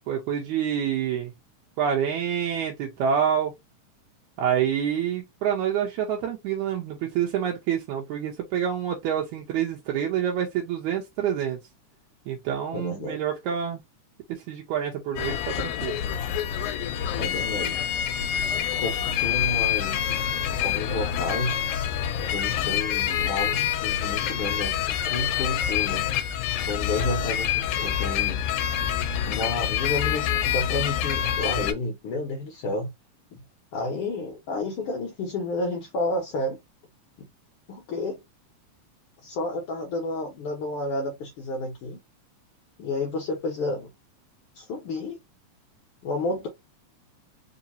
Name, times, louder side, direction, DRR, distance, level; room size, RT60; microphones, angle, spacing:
voice 1, 0.1-1.3 1.8-3.5 4.4-11.6 12.3-13.8 14.3-16.0, right 8 dB, 80° right, 2.1 m, -27 dB
voice 2, 12.7-13.2 17.2-17.8 18.8-20.1 20.6-21.6 22.3-26.1 26.7-28.5 29.3-32.9 33.3-33.4 33.7-36.6 37.2-37.3 37.7-38.2 39.2-42.0 42.8-43.9 44.5-45.2 46.0-46.5, left 2 dB, 65° left, 1.5 m, -31 dB
sound 1, 15.2-31.7, left 9 dB, 85° left, 2.0 m, -27 dB
4.8 x 2.8 x 2.6 m
omnidirectional pair, 3.5 m